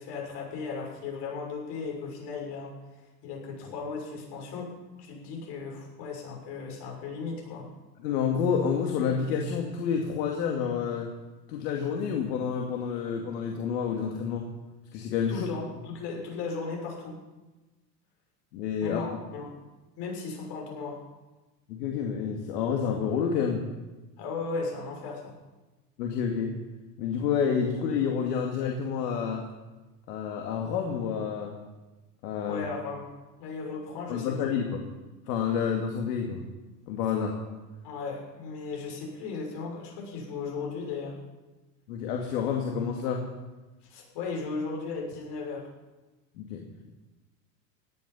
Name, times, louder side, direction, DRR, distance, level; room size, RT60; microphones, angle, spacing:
voice 1, 0.0-2.7 3.2-4.7 5.0-7.7 15.3-17.2 18.8-19.5 20.0-21.0 24.2-25.3 32.5-33.1 33.4-34.4 37.8-41.2 43.9-45.7, left 4 dB, 55° left, 0 dB, 6.2 m, -36 dB
voice 2, 8.0-11.1 11.5-14.5 14.9-15.5 18.5-19.0 21.7-23.6 26.0-26.5 27.0-29.4 30.1-31.5 32.2-32.6 34.1-34.8 35.3-36.4 36.9-37.4 41.9-43.2 46.4-46.9, left 7 dB, 70° left, 1 dB, 2.3 m, -29 dB
17.5 x 11.5 x 5.6 m, 1.2 s
hypercardioid pair, 95°, 50 cm